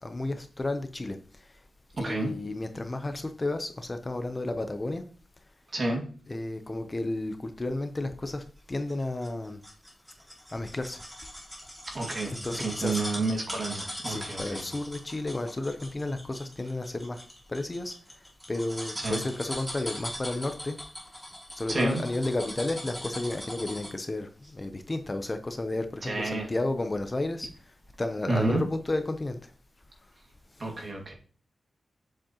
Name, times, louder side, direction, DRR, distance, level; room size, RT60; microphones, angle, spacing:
voice 1, 0.0-1.6 2.0-5.0 6.3-9.6 10.5-11.0 12.3-13.3 14.1-17.2 17.5-17.9 18.5-20.8 21.5-27.5 28.0-29.5, left 2 dB, 25° left, 0.7 m, -32 dB
voice 2, 2.0-2.3 5.7-6.0 11.9-14.6 19.0-19.2 21.7-22.0 26.0-26.5 28.3-28.6 30.6-31.1, right 2 dB, 45° right, 2.1 m, -30 dB
sound 1, 8.9-24.1 24.4-24.5, equal, 5° right, 2.4 m, -40 dB
7.5 x 7.0 x 3.0 m
wide cardioid pair, 125°, 0 cm